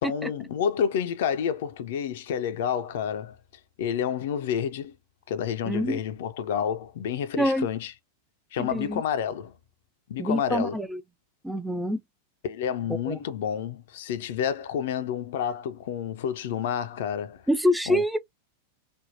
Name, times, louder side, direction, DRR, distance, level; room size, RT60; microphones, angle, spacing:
voice 1, 0.0-3.4 3.8-4.9 5.3-7.9 8.5-9.5 10.1-10.8 12.4-17.4 17.9-18.0, left 8 dB, 55° left, 0.4 m, -29 dB
voice 2, 5.7-6.0 7.4-7.7 8.6-9.0 10.2-11.0 11.4-12.0 13.1-13.2 17.5-18.2, equal, 5° right, 0.3 m, -26 dB
3.4 x 2.1 x 2.5 m
figure-of-eight pair, 90°, 0 cm